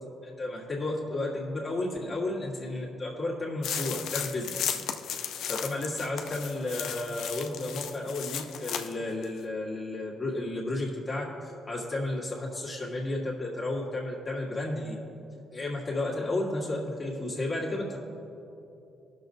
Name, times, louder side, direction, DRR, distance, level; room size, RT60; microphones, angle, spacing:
voice 1, 0.2-4.8 5.5-15.0 15.5-18.0, left 2 dB, 30° left, -4 dB, 1.6 m, -32 dB
sound 1, 3.6-8.9 9.2-9.3, left 9 dB, 80° left, 0.5 m, -35 dB
19.5 x 6.5 x 2.7 m, 2.9 s
cardioid pair, 90°, 0 cm